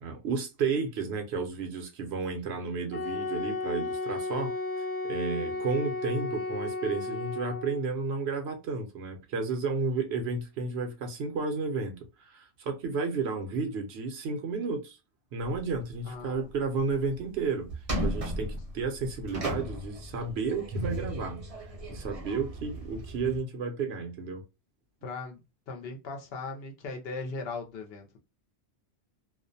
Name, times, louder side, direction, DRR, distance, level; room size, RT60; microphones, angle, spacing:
voice 1, 0.0-4.5 5.0-15.0 15.3-17.7 18.0-21.4 21.9-24.4, right 4 dB, 75° right, 0.9 m, -32 dB
Wind instrument woodwind instrument, 2.9-7.8, left 2 dB, 25° left, 0.5 m, -33 dB
sound 1, 15.4-15.9 16.3-16.4 16.9-17.3 17.7-23.4, equal, 40° right, 0.7 m, -36 dB
voice 2, 16.0-16.5 25.0-25.4 25.7-28.2, left 3 dB, 65° left, 0.8 m, -38 dB
2.4 x 2.1 x 2.5 m
omnidirectional pair, 1.1 m